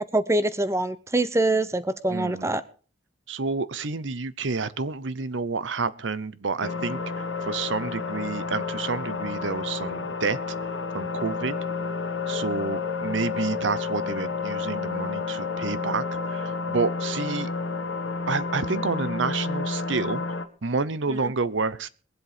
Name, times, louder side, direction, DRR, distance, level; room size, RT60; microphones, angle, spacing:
voice 1, 0.1-2.6 21.1-21.2, right 2 dB, 15° right, 15 dB, 0.8 m, -24 dB
voice 2, 2.1-2.5 3.3-10.4 10.9-11.6 12.3-17.5 18.3-21.9, right 4 dB, 85° right, 17 dB, 0.8 m, -29 dB
sound 1, 6.6-20.4, left 4 dB, 70° left, 1.3 m, -30 dB
22.0 x 7.9 x 5.0 m, 0.38 s
head